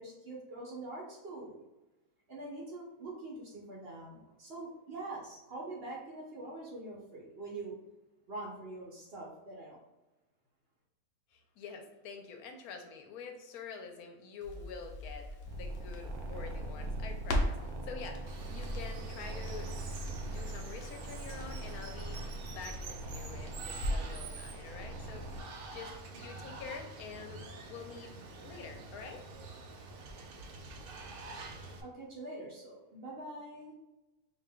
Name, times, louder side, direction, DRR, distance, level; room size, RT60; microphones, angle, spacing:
voice 1, 0.0-1.6 2.3-7.8 8.3-9.8 31.8-33.7, right 2 dB, 50° right, -2 dB, 0.8 m, -44 dB
voice 2, 11.3-20.0 20.2-25.4 25.7-28.1 28.4-29.5, left 5 dB, 80° left, 4 dB, 1.1 m, -47 dB
Crackle, 14.4-24.2 24.5-24.6, left 1 dB, 55° left, 0.7 m, -40 dB
sound 1, 15.5-25.4, right 2 dB, 75° right, 1.0 m, -42 dB
Water, 18.3-31.8, right 3 dB, 90° right, 0.5 m, -46 dB
5.2 x 2.7 x 2.2 m, 1.0 s
omnidirectional pair, 1.6 m